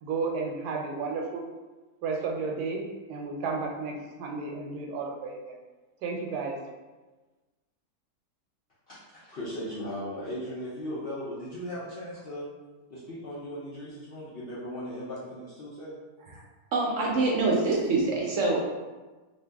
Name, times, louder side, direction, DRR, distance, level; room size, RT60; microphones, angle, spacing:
voice 1, 0.0-1.5 2.0-2.8 3.1-5.6 6.0-6.6, right 4 dB, 85° right, 1 dB, 1.1 m, -32 dB
voice 2, 8.9-12.5 12.9-16.0, equal, 60° left, -9 dB, 0.6 m, -37 dB
voice 3, 16.7-18.6, right 3 dB, 65° right, -3 dB, 0.7 m, -25 dB
2.7 x 2.6 x 3.3 m, 1.2 s
omnidirectional pair, 1.6 m